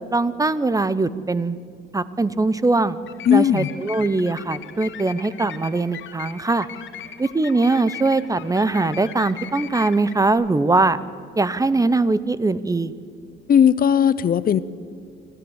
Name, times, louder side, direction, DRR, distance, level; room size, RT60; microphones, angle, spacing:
voice 1, 0.1-1.6 1.9-3.0 3.3-6.7 7.2-11.0 11.4-12.9, right 3 dB, 15° right, 16 dB, 0.7 m, -21 dB
sound 1, 3.1-10.3, left 10 dB, 75° left, 1.5 m, -38 dB
voice 2, 3.3-3.7 13.5-14.6, left 8 dB, 50° left, 17 dB, 0.7 m, -17 dB
26.0 x 13.0 x 8.0 m, 2.5 s
cardioid pair, 90°, 20 cm